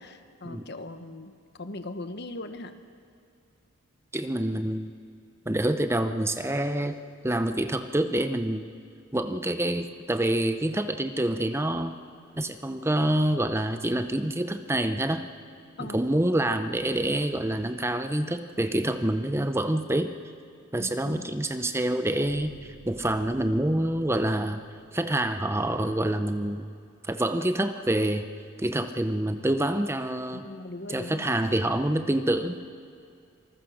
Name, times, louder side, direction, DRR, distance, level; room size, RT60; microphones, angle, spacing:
voice 1, 0.0-1.3 1.6-2.7 15.8-16.0 20.8-21.2 30.3-31.3, left 2 dB, 50° left, 9 dB, 1.3 m, -39 dB
voice 2, 4.1-4.9 5.5-7.0 7.2-8.6 9.1-12.0 12.4-15.2 15.8-20.1 20.7-22.5 22.9-24.6 24.9-26.7 27.0-28.3 28.6-30.5 30.9-32.5, right 1 dB, 10° right, 9 dB, 0.7 m, -27 dB
sound 1, 21.0-25.1, right 1 dB, 65° right, 3.9 m, -51 dB
27.0 x 20.5 x 6.5 m, 2.5 s
head